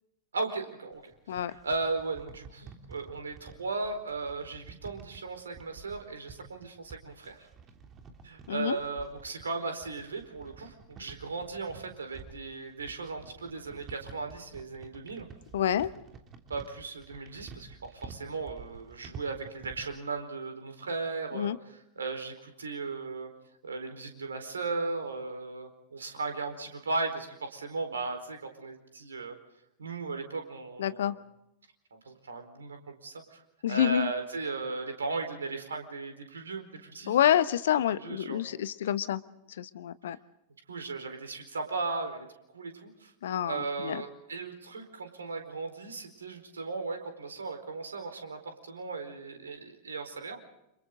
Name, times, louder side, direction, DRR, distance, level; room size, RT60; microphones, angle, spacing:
voice 1, 0.3-1.1 1.6-7.5 8.2-15.3 16.5-23.3 23.6-29.4 29.8-31.2 31.9-33.4 33.7-37.2 37.9-38.4 40.7-42.3 42.5-43.1 43.4-50.4, right 3 dB, 70° right, 6 dB, 4.4 m, -36 dB
sound 1, 0.9-20.0, right 5 dB, 25° right, 3.2 m, -50 dB
voice 2, 15.5-15.9 21.3-21.6 30.8-31.1 33.6-34.1 37.1-39.2 39.6-40.2 43.2-44.0, left 10 dB, 60° left, 15 dB, 1.1 m, -27 dB
29.5 x 27.5 x 3.9 m, 0.84 s
figure-of-eight pair, 90°, 0 cm